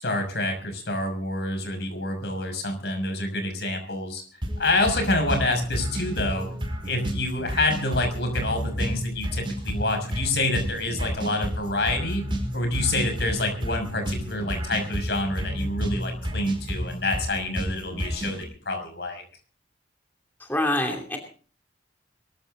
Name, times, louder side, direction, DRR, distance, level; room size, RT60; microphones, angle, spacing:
voice 1, 0.0-4.2 4.6-6.5 6.8-12.2 12.5-19.2, left 2 dB, 60° left, 5 dB, 6.1 m, -27 dB
sound 1, 4.4-18.4, equal, 25° right, 5.4 m, -31 dB
voice 2, 20.4-21.2, left 1 dB, 10° left, 2 dB, 2.7 m, -25 dB
23.5 x 14.0 x 3.8 m, 0.42 s
head